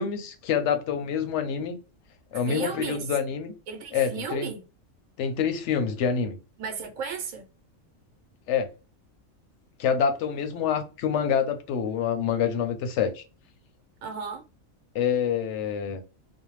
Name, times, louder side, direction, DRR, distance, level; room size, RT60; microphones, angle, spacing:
voice 1, 0.0-1.8 2.3-3.5 3.9-4.5 5.2-6.4 8.5-8.7 9.8-13.2 14.9-16.0, left 7 dB, 65° left, 0.8 m, -26 dB
voice 2, 2.3-3.1 3.7-4.6 6.6-7.4 14.0-14.4, right 6 dB, 75° right, 1.1 m, -34 dB
2.6 x 2.1 x 3.0 m
omnidirectional pair, 1.4 m